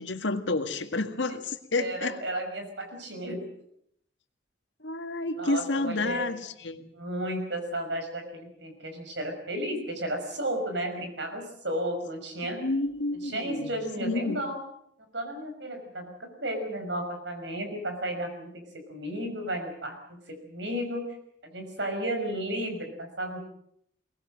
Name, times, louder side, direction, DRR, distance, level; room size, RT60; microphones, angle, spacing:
voice 1, 0.0-2.2 4.8-6.8 12.6-14.4, left 2 dB, 75° left, 8 dB, 1.9 m, -30 dB
voice 2, 1.8-3.4 5.4-6.3 6.9-12.6 13.2-14.6 15.1-18.6 18.9-21.0 21.4-23.5, right 1 dB, 70° right, 5 dB, 5.8 m, -33 dB
23.0 x 19.5 x 7.7 m, 0.70 s
head